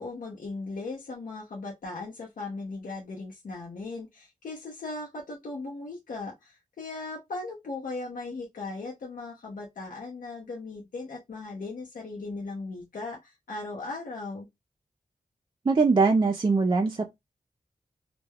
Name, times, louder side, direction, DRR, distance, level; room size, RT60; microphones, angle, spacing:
voice 1, 0.0-14.5, left 3 dB, 70° left, 0.7 m, -38 dB
voice 2, 15.6-17.1, right 4 dB, 35° right, 0.4 m, -22 dB
2.2 x 2.1 x 3.3 m
wide cardioid pair, 70°, 14 cm